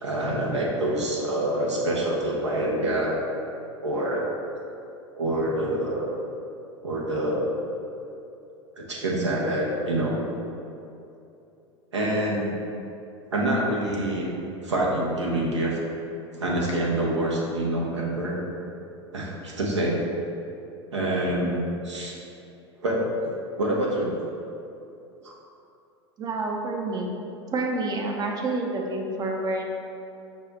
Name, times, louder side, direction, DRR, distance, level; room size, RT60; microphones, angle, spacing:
voice 1, 0.0-3.2 3.8-4.2 5.2-6.1 6.8-7.5 8.8-10.3 11.9-12.5 13.3-14.3 14.6-15.8 16.4-18.4 19.1-20.0 20.9-22.2 22.8-23.3 23.6-24.1 25.2-25.3, right 1 dB, 80° right, -4 dB, 0.9 m, -26 dB
voice 2, 26.2-27.1 27.5-29.6, right 2 dB, 25° right, 1 dB, 0.6 m, -28 dB
5.4 x 2.4 x 4.0 m, 2.7 s
figure-of-eight pair, 85°, 15 cm